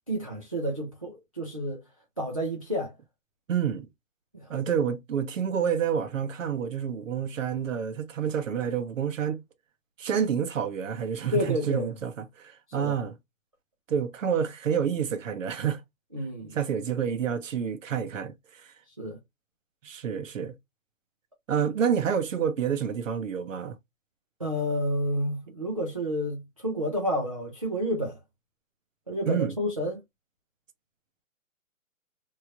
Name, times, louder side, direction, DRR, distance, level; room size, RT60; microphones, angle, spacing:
voice 1, 0.1-1.8 2.2-2.9 4.3-4.5 11.3-11.9 12.8-13.0 16.1-16.5 19.0-19.2 24.4-28.2 29.1-30.0, equal, 30° right, 0.4 m, -30 dB
voice 2, 3.5-3.9 4.5-9.4 10.0-13.1 13.9-15.8 16.5-18.7 19.8-20.5 21.5-23.8 29.3-29.5, right 7 dB, 65° right, 0.8 m, -28 dB
3.1 x 2.7 x 2.3 m
hypercardioid pair, 160°, 41 cm